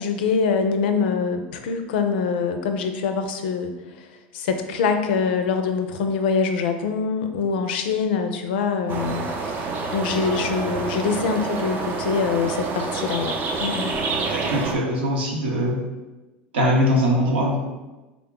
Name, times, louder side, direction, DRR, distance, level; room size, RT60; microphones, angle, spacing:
voice 1, 0.0-4.1 4.3-14.0, left 5 dB, 70° left, 7 dB, 0.4 m, -24 dB
sound 1, 8.9-14.8, right 3 dB, 40° right, 0.6 m, -27 dB
voice 2, 14.3-15.8 16.5-17.6, equal, 80° right, -1 dB, 0.9 m, -21 dB
3.6 x 2.3 x 3.6 m, 1.1 s
hypercardioid pair, 85°, 6 cm